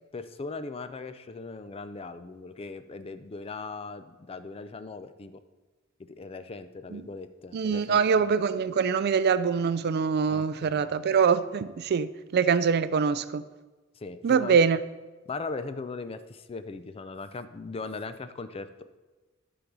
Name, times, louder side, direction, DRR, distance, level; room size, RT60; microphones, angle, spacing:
voice 1, 0.1-5.4 6.1-8.3 10.3-10.9 14.0-14.6 15.3-18.7, left 3 dB, 30° left, 0.4 m, -39 dB
voice 2, 7.5-13.4 14.2-14.8, right 6 dB, 50° right, 0.4 m, -24 dB
9.9 x 4.0 x 6.0 m
head